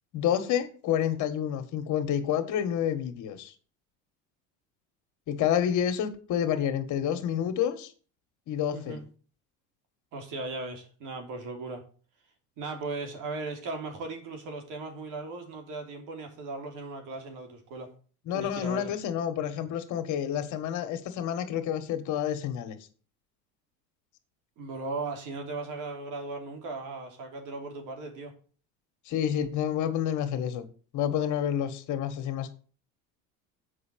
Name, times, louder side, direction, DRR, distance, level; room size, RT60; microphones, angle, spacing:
voice 1, 0.1-3.5 5.3-7.9 8.5-9.0 18.3-22.8 29.1-30.6 30.9-32.5, left 9 dB, 55° left, 1.7 m, -29 dB
voice 2, 10.1-11.8 12.6-17.9 18.3-18.9 24.6-28.3, right 3 dB, 60° right, 3.1 m, -37 dB
7.8 x 5.6 x 7.5 m
supercardioid pair, 115°, 35 cm